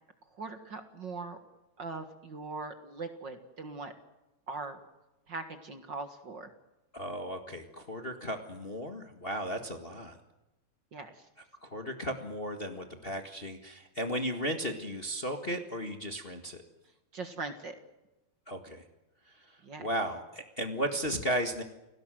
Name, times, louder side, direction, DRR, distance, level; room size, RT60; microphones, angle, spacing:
voice 1, 0.4-1.4 1.8-3.9 4.5-4.8 5.3-6.5 10.9-11.1 17.1-17.8 19.6-19.9, right 3 dB, 45° right, 7 dB, 1.5 m, -40 dB
voice 2, 6.9-10.2 11.6-16.6 18.5-18.8 19.3-19.5 19.8-21.6, equal, 50° left, 5 dB, 0.6 m, -35 dB
29.5 x 18.5 x 7.7 m, 0.98 s
omnidirectional pair, 4.4 m